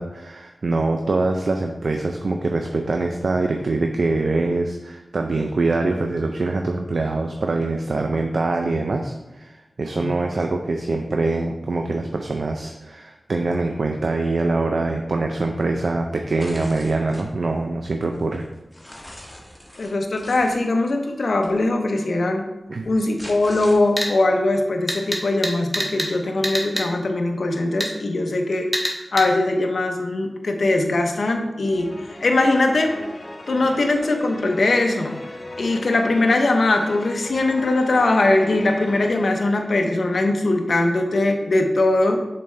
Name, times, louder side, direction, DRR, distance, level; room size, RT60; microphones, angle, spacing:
voice 1, 0.0-18.4 22.7-22.9, right 3 dB, 70° right, 3 dB, 0.4 m, -24 dB
sound 1, 16.4-17.3 17.8-20.5 21.4-21.6 22.8-24.2, equal, 15° left, 1.3 m, -41 dB
voice 2, 19.8-22.4 22.8-28.7 29.1-31.9 32.2-32.9 33.5-35.2 35.6-42.2, left 2 dB, 75° left, 4 dB, 0.6 m, -21 dB
sound 2, 24.0-24.1 24.9-26.1 26.4-26.9 27.8-27.9 28.7-29.3, equal, 15° right, 1.3 m, -25 dB
sound 3, 31.6-40.2, left 1 dB, 45° left, 0.9 m, -38 dB
7.0 x 4.2 x 3.2 m, 0.98 s
wide cardioid pair, 55°, 0 cm